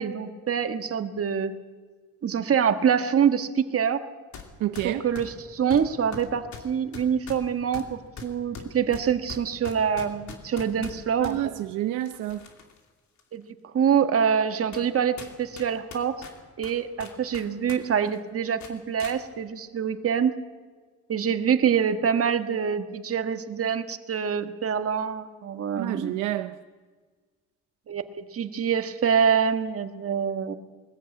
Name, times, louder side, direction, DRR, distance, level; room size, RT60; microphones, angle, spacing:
voice 1, 0.0-1.5 2.2-4.0 4.8-11.5 13.3-13.4 13.7-16.2 16.6-20.3 21.1-26.2 27.9-30.5, right 7 dB, 50° right, 9 dB, 1.5 m, -25 dB
sound 1, 4.3-4.5 4.8-11.4 12.0-12.8 13.2-13.3 14.0-14.1 14.7-14.9 15.2-17.8 18.1-18.2 18.6-19.2, left 5 dB, 70° left, 2.7 m, -42 dB
voice 2, 4.6-5.0 11.2-12.5 25.7-26.6, right 14 dB, 90° right, 9 dB, 0.7 m, -29 dB
21.0 x 14.5 x 8.8 m, 1.4 s
cardioid pair, 90°, 30 cm